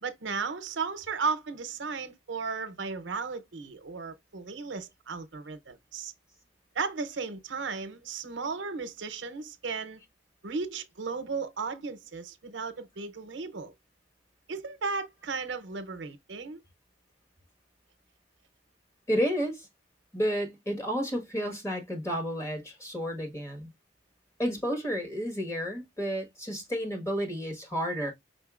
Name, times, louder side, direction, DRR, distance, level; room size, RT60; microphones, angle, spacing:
voice 1, 0.0-6.1 6.7-10.0 10.4-13.7 14.5-16.6, right 4 dB, 85° right, 0.7 m, -35 dB
voice 2, 19.1-19.7 20.1-23.7 24.4-28.1, equal, 15° left, 1.4 m, -31 dB
5.5 x 3.8 x 2.4 m
head